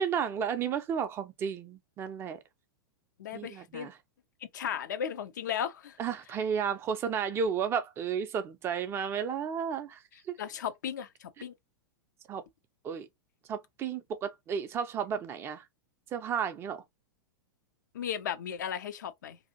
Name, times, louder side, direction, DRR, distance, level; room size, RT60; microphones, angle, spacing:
voice 1, 0.0-2.4 3.3-4.0 6.0-10.0 10.3-10.4 12.3-12.4 12.8-13.1 13.5-15.6 16.1-16.8, right 7 dB, 20° right, 0.4 m, -32 dB
voice 2, 3.2-3.9 4.5-6.0 10.4-11.5 17.9-19.4, left 9 dB, 55° left, 0.4 m, -35 dB
2.6 x 2.3 x 2.6 m
figure-of-eight pair, 95°, 11 cm